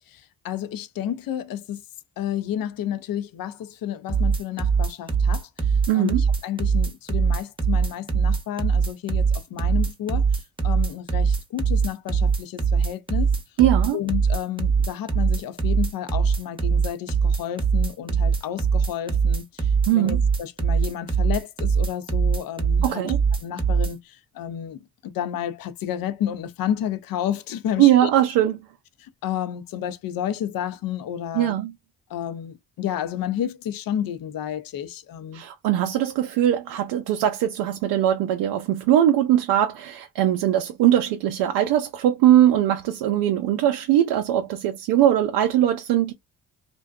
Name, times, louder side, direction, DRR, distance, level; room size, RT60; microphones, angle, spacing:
voice 1, 0.1-1.8 2.2-5.5 5.9-10.3 10.6-13.3 13.9-23.1 23.4-28.1 29.0-31.5 32.1-35.4, left 10 dB, 60° left, 0.6 m, -31 dB
sound 1, 4.1-23.9, right 6 dB, 15° right, 0.8 m, -22 dB
voice 2, 5.9-6.2 13.6-14.0 19.9-20.2 22.8-23.2 27.8-28.6 31.3-31.7 35.3-46.1, right 12 dB, 80° right, 0.5 m, -20 dB
2.6 x 2.1 x 2.3 m
supercardioid pair, 60°, 39 cm